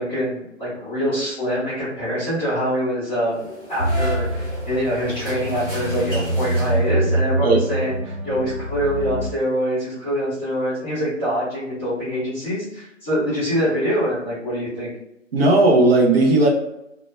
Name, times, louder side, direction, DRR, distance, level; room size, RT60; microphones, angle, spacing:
voice 1, 0.0-3.4 3.7-14.9, equal, 5° left, -16 dB, 0.6 m, -24 dB
sound 1, 3.3-7.2, equal, 15° right, 0.9 m, -35 dB
sound 2, 3.8-9.3, right 1 dB, 80° right, 0.9 m, -25 dB
voice 2, 15.3-16.5, right 2 dB, 50° right, -1 dB, 0.7 m, -15 dB
2.1 x 2.0 x 3.1 m, 0.86 s
figure-of-eight pair, 140°, 39 cm